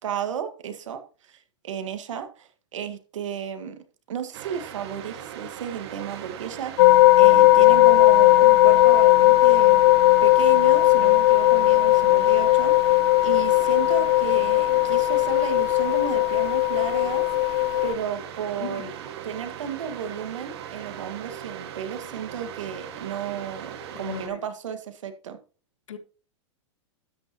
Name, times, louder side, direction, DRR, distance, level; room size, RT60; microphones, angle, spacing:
voice 1, 0.0-1.4 1.6-9.8 10.2-18.9 19.2-25.4, right 8 dB, 85° right, 1.8 m, -33 dB
sound 1, 4.3-24.3, right 9 dB, 60° right, 2.2 m, -39 dB
sound 2, 6.8-17.9, left 18 dB, 50° left, 0.4 m, -17 dB
voice 2, 18.6-18.9 23.9-24.4 25.9-26.0, left 8 dB, 90° left, 1.8 m, -36 dB
13.0 x 8.9 x 3.0 m
hypercardioid pair, 140°, 16 cm